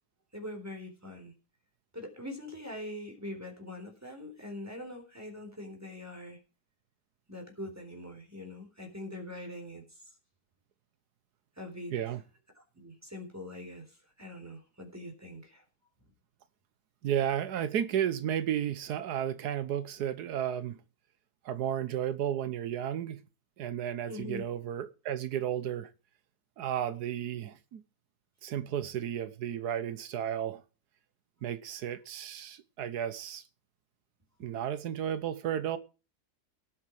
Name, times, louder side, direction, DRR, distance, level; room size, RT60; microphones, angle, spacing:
voice 1, 0.3-1.3 1.9-6.4 7.3-10.0 11.6-12.0 12.6-15.6 24.1-24.5, left 1 dB, 10° right, 4.0 m, -43 dB
voice 2, 11.9-12.2 17.0-20.8 21.4-23.2 23.6-25.9 26.6-27.8 28.4-30.6 31.4-33.4 34.4-35.8, right 10 dB, 85° right, 1.4 m, -33 dB
18.0 x 8.6 x 4.8 m
omnidirectional pair, 1.6 m